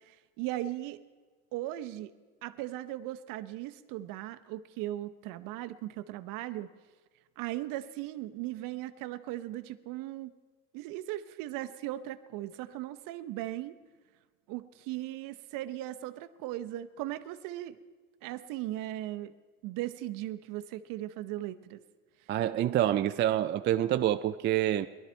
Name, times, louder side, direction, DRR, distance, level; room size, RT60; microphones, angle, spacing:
voice 1, 0.1-1.0 1.5-2.1 2.4-6.7 7.4-10.3 10.7-13.8 14.5-17.8 18.2-19.3 19.6-21.8, right 14 dB, 60° right, 0.8 m, -38 dB
voice 2, 22.3-24.9, right 12 dB, 30° right, 0.4 m, -27 dB
18.0 x 12.0 x 4.4 m
supercardioid pair, 110°, 36 cm